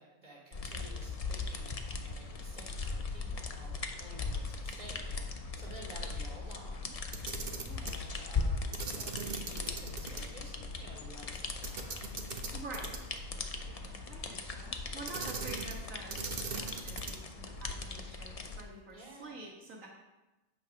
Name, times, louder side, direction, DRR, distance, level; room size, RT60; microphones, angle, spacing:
voice 1, 0.0-6.9 7.8-12.1 13.8-14.1 18.9-19.5, right 1 dB, 30° right, -5 dB, 3.0 m, -52 dB
sound 1, 0.5-18.6, left 4 dB, 40° left, 0.6 m, -39 dB
Camera, 7.0-8.0 8.7-10.2 10.5-10.6 11.6-13.2 15.1-15.8 16.1-17.3, right 4 dB, 50° right, 1.0 m, -40 dB
voice 2, 7.6-8.0 12.5-13.1 13.6-19.9, right 2 dB, 85° right, -2 dB, 1.8 m, -48 dB
8.5 x 5.5 x 5.7 m, 1.1 s
omnidirectional pair, 1.4 m